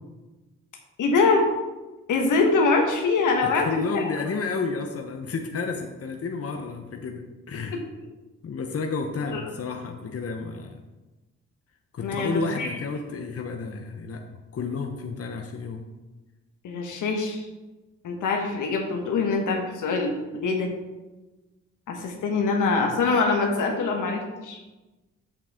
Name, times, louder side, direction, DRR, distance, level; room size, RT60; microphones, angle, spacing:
voice 1, 1.0-1.5 2.1-3.7 3.9-4.0 9.3-9.4 12.0-12.7 16.6-17.5 18.0-20.7 21.9-24.6, left 4 dB, 80° left, 2 dB, 1.4 m, -24 dB
voice 2, 3.4-7.8 8.4-10.8 11.9-15.8, left 4 dB, 50° left, 4 dB, 0.9 m, -31 dB
7.6 x 6.8 x 3.7 m, 1.1 s
supercardioid pair, 50°, 31 cm